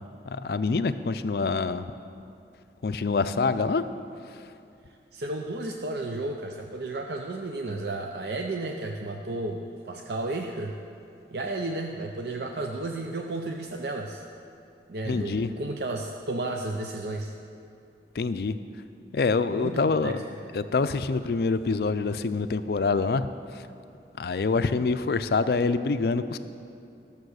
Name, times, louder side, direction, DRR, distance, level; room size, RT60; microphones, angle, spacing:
voice 1, 0.0-1.9 2.8-3.8 4.3-4.5 15.0-15.5 18.1-18.6 19.1-20.2 20.5-23.7 24.2-26.4, left 4 dB, 60° left, 12 dB, 0.4 m, -26 dB
voice 2, 5.1-10.8 11.3-14.2 14.9-17.3 19.5-20.1, right 2 dB, 70° right, 2 dB, 0.6 m, -33 dB
13.0 x 6.9 x 6.4 m, 2.6 s
head